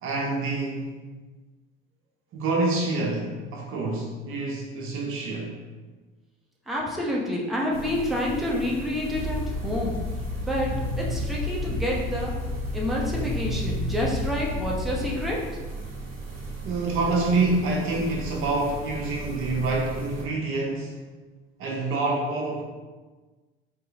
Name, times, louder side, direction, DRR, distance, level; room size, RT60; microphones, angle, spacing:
voice 1, 0.0-0.9 2.3-5.6 16.6-21.0 21.6-22.6, right 2 dB, 45° right, -1 dB, 0.8 m, -27 dB
voice 2, 6.7-10.0 10.4-10.7 11.0-12.3 12.7-15.4, left 1 dB, ahead, -4 dB, 0.9 m, -28 dB
sound 1, 7.7-20.3, right 2 dB, 90° right, 0.7 m, -37 dB
sound 2, 9.1-15.1, left 1 dB, 50° left, 1.4 m, -31 dB
3.1 x 2.9 x 3.6 m, 1.3 s
figure-of-eight pair, 65°, 29 cm